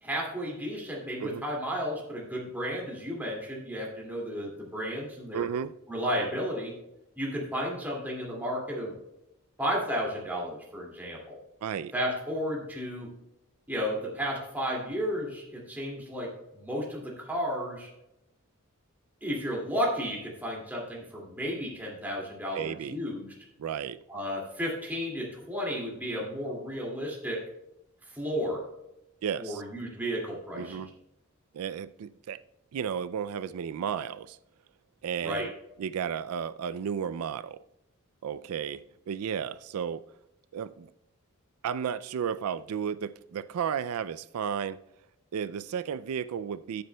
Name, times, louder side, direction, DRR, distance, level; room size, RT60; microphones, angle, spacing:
voice 1, 0.0-5.4 5.9-6.7 7.2-8.9 9.6-11.4 11.9-13.1 13.7-16.3 16.6-17.9 19.2-23.3 24.1-27.4 28.1-28.6 29.4-30.8 35.2-35.5, equal, 10° right, 2.3 m, -33 dB
voice 2, 5.3-5.8 11.6-11.9 22.5-23.0 23.6-24.0 29.2-29.6 30.5-30.9 31.5-32.4 32.7-34.4 35.0-35.5 35.8-37.6 38.2-40.0 40.5-40.9 41.6-44.8 45.3-46.8, right 7 dB, 85° right, 0.4 m, -33 dB
14.0 x 7.8 x 2.2 m
head